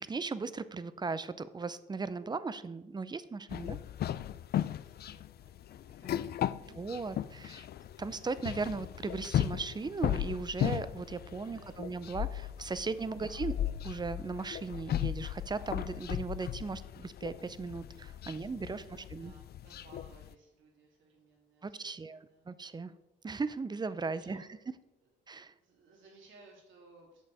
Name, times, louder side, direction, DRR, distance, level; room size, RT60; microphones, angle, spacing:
voice 1, 0.0-3.8 6.7-7.7 8.0-13.5 13.8-19.3 21.6-22.9 23.2-24.5 25.3-25.5, right 4 dB, 20° right, 14 dB, 0.5 m, -37 dB
sound 1, 3.5-20.3, left 11 dB, 55° left, 0.4 m, -36 dB
voice 2, 4.2-6.8 11.4-11.9 12.8-13.5 18.2-22.5 24.1-24.5 25.0-25.1 25.5-27.2, right 3 dB, 75° right, -1 dB, 2.8 m, -61 dB
8.3 x 6.6 x 4.9 m, 0.96 s
cardioid pair, 90°, 20 cm